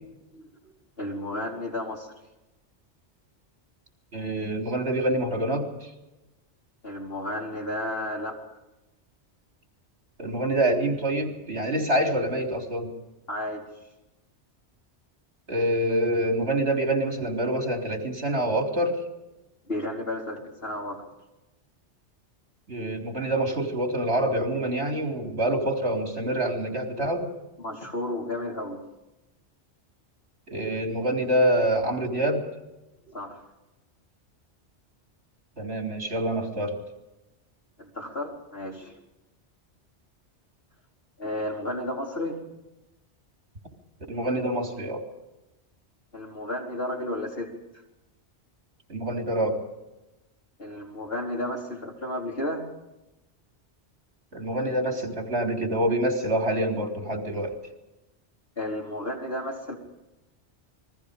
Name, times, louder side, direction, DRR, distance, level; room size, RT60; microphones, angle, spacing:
voice 1, 1.0-2.1 6.8-8.4 13.3-13.7 19.7-21.0 27.6-28.8 33.1-33.4 37.8-39.0 41.2-42.4 46.1-47.5 50.6-52.6 58.6-59.8, left 1 dB, 55° left, -1 dB, 4.6 m, -32 dB
voice 2, 4.1-5.9 10.2-12.9 15.5-19.0 22.7-27.3 30.5-32.4 35.6-36.8 44.1-45.0 48.9-49.6 54.3-57.6, right 1 dB, 65° right, 3 dB, 3.9 m, -26 dB
29.0 x 22.0 x 5.2 m, 1.0 s
omnidirectional pair, 1.2 m